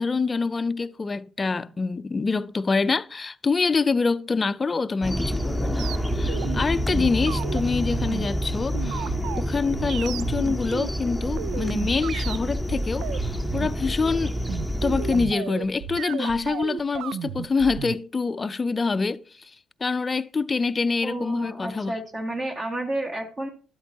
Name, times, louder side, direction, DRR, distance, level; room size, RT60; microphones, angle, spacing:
voice 1, 0.0-14.3 14.8-19.5 19.8-21.9, left 4 dB, 30° left, 0.5 m, -26 dB
sound 1, 5.0-15.2, equal, ahead, 0.8 m, -28 dB
sound 2, 5.8-18.0, right 10 dB, 90° right, 0.3 m, -34 dB
voice 2, 21.0-23.5, right 1 dB, 40° right, 2.1 m, -31 dB
12.0 x 8.3 x 2.9 m
cardioid pair, 90°, 0 cm